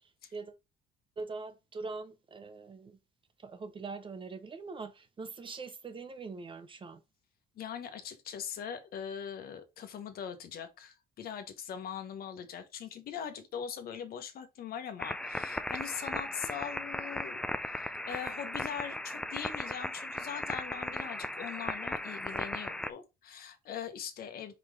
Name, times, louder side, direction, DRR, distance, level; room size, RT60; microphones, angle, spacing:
voice 1, 1.2-3.0 3.4-7.0, right 4 dB, 30° right, 0.9 m, -42 dB
voice 2, 7.6-24.5, left 8 dB, 60° left, 1.2 m, -41 dB
sound 1, 15.0-22.9, left 1 dB, 5° left, 0.4 m, -37 dB
4.8 x 3.9 x 4.9 m
cardioid pair, 110°, 17 cm